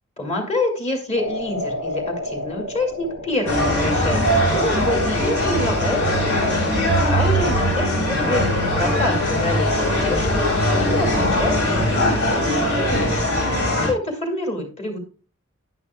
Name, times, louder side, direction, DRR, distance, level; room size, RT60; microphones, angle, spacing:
voice 1, 0.2-6.5 7.1-13.4 13.8-15.0, left 1 dB, 30° left, 2 dB, 2.2 m, -27 dB
sound 1, 1.1-6.8, left 1 dB, 75° left, 3.7 m, -33 dB
sound 2, 3.5-13.9, left 1 dB, 90° left, 3.6 m, -20 dB
12.0 x 9.7 x 2.2 m, 0.36 s
head